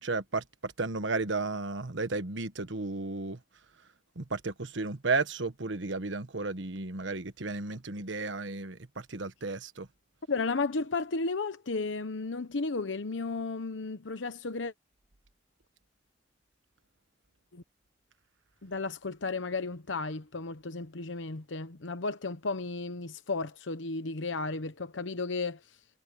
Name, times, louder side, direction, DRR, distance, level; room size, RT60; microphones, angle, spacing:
voice 1, 0.0-3.4 4.2-9.9, right 3 dB, 80° right, 1.3 m, -33 dB
voice 2, 10.3-14.7 17.5-17.6 18.6-25.8, left 3 dB, 85° left, 0.9 m, -34 dB
head